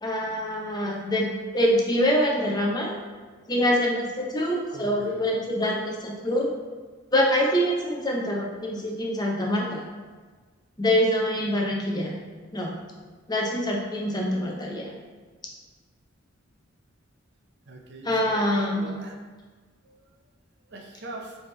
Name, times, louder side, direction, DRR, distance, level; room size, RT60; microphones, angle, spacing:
voice 1, 0.0-1.3 1.5-2.9 3.5-6.5 7.1-9.8 10.8-12.1 12.5-12.7 13.3-14.9 18.0-18.9, equal, 20° left, -1 dB, 0.6 m, -25 dB
voice 2, 4.7-5.3 17.7-18.4 18.7-19.2 19.8-20.0 20.7-21.4, right 2 dB, 60° right, 1 dB, 0.6 m, -42 dB
4.2 x 3.4 x 3.2 m, 1.4 s
head